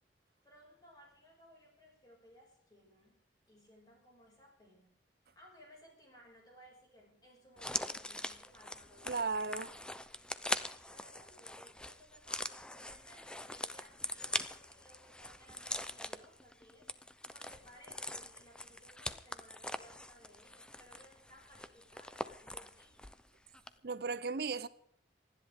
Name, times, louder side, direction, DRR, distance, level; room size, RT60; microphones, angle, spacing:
voice 1, 0.4-4.9 5.4-9.3 10.9-23.0, equal, 25° left, 5.7 m, -61 dB
sound 1, 7.6-23.3 23.5-23.7, left 1 dB, 5° left, 0.6 m, -42 dB
voice 2, 9.1-9.7 23.8-24.7, right 4 dB, 60° right, 0.7 m, -36 dB
27.5 x 10.5 x 3.6 m
head